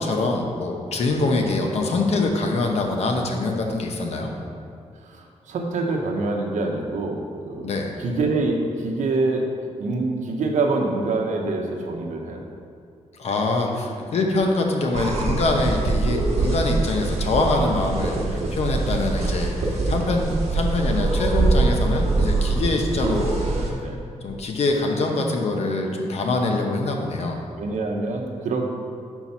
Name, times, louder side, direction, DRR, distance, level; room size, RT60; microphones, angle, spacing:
voice 1, 0.0-4.3 7.6-7.9 13.2-23.4 23.7-23.8 24.2-27.4, left 2 dB, 60° left, 2 dB, 0.8 m, -24 dB
voice 2, 5.0-9.5 9.8-12.5 18.3-18.5 20.0-20.2 22.6-22.7 23.8-24.0 27.6-28.7, right 3 dB, 90° right, 1 dB, 0.8 m, -26 dB
sound 1, 14.9-23.7, right 3 dB, 60° right, 1.1 m, -23 dB
5.8 x 4.5 x 5.4 m, 2.3 s
wide cardioid pair, 165°, 12 cm